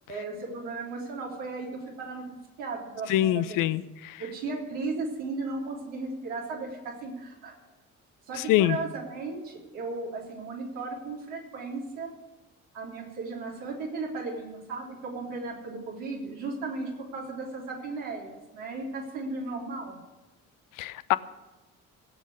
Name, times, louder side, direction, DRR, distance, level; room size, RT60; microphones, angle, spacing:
voice 1, 0.1-2.2 2.6-3.7 4.2-7.5 8.3-12.1 12.7-20.0, right 3 dB, 70° right, -2 dB, 3.5 m, -36 dB
voice 2, 3.1-4.2 8.5-8.8 20.8-21.2, left 14 dB, 55° left, 16 dB, 0.7 m, -24 dB
17.0 x 8.4 x 8.3 m, 1.1 s
figure-of-eight pair, 45°, 40 cm